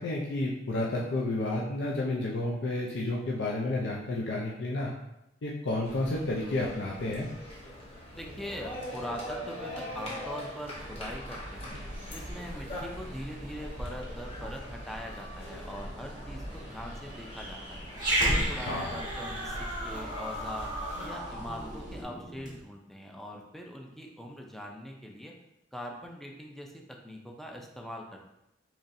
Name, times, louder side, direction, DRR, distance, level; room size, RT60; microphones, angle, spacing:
voice 1, 0.0-4.9 5.4-7.3 18.6-19.0, left 2 dB, 70° left, -4 dB, 0.5 m, -31 dB
sound 1, 5.8-21.1, left 1 dB, 35° left, 0.9 m, -43 dB
voice 2, 8.1-11.7 12.1-17.9 18.3-20.7 21.0-25.3 25.7-28.2, equal, ahead, 0 dB, 0.4 m, -42 dB
sound 2, 10.7-22.0, equal, 45° right, 0.7 m, -44 dB
Growling, 17.9-22.6, right 1 dB, 25° right, 1.2 m, -32 dB
4.0 x 3.0 x 2.6 m, 0.86 s
head